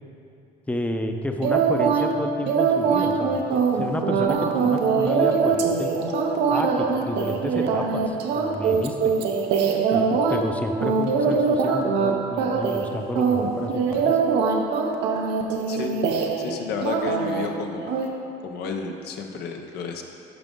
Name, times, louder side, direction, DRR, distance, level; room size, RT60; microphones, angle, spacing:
voice 1, 0.7-5.9 6.5-9.1 9.9-14.2, left 1 dB, 10° left, 5 dB, 0.6 m, -30 dB
sound 1, 1.4-2.1 2.5-10.4 10.8-12.1 12.4-12.9 13.2-16.5 16.8-17.5 17.9-18.1, right 5 dB, 85° right, 0.8 m, -22 dB
voice 2, 16.4-18.0 18.4-20.0, left 5 dB, 75° left, 3 dB, 0.8 m, -31 dB
13.0 x 5.0 x 3.8 m, 2.6 s
cardioid pair, 110°, 17 cm